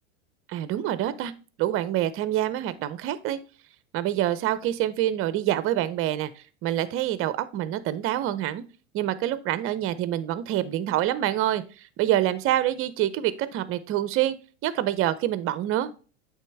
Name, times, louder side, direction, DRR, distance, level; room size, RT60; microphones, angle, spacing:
voice 1, 0.5-1.3 1.6-3.4 3.9-6.3 6.6-8.6 8.9-14.3 14.6-15.9, right 13 dB, 40° right, 15 dB, 0.6 m, -26 dB
8.3 x 3.5 x 3.4 m, 0.37 s
hypercardioid pair, 105°, 34 cm